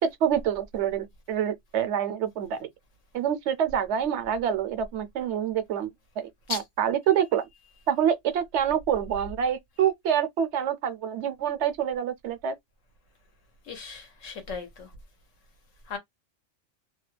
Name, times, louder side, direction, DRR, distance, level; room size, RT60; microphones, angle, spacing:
voice 1, 0.0-2.6 3.1-5.9 6.2-7.5 7.9-12.5, right 9 dB, 70° right, 0.9 m, -26 dB
voice 2, 13.7-14.9 15.9-16.0, left 5 dB, 80° left, 1.4 m, -36 dB
2.8 x 2.2 x 3.2 m
omnidirectional pair, 1.3 m